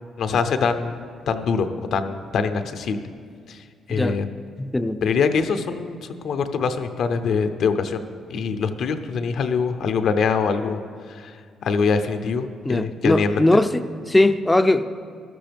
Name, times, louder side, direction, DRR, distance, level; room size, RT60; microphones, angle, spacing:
voice 1, 0.2-0.9 1.3-3.0 3.5-4.3 5.0-10.8 11.1-13.6, left 5 dB, 70° left, 0.7 m, -24 dB
voice 2, 4.6-5.0 12.6-14.8, left 1 dB, 10° left, 0.5 m, -20 dB
14.0 x 12.5 x 3.5 m
cardioid pair, 90°, 0 cm